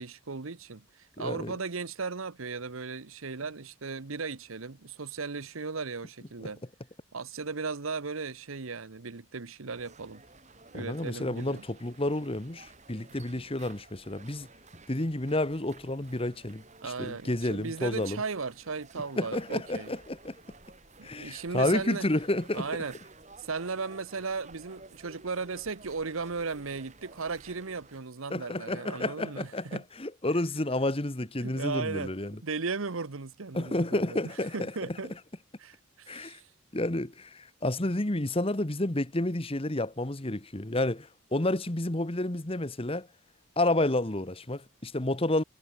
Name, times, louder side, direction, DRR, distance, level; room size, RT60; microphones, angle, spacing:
voice 1, 0.0-6.6 7.1-10.2 10.7-11.6 16.8-19.9 21.0-22.1 22.5-22.9 23.4-29.8 31.4-32.1 32.4-34.2 34.5-35.1 35.6-36.5, right 4 dB, 80° right, 1.0 m, -36 dB
voice 2, 1.2-1.5 10.7-14.5 14.9-18.2 19.2-20.4 21.0-22.7 28.3-32.4 33.5-35.0 36.1-36.4 36.7-43.1 43.6-45.4, left 1 dB, 25° left, 1.3 m, -30 dB
sound 1, 9.7-28.0, right 3 dB, 35° right, 4.4 m, -54 dB
head